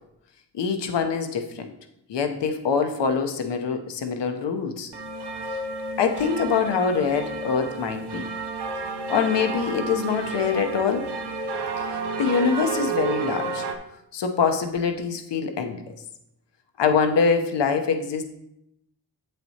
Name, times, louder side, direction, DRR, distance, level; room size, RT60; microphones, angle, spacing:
voice 1, 0.5-1.7 2.1-4.9 6.0-8.2 9.1-11.1 11.9-13.7 14.1-15.9 16.8-18.2, left 6 dB, 85° left, 6 dB, 0.8 m, -24 dB
sound 1, 4.9-13.8, right 4 dB, 70° right, 0.9 m, -31 dB
8.1 x 7.5 x 2.8 m, 0.80 s
cardioid pair, 80°, 42 cm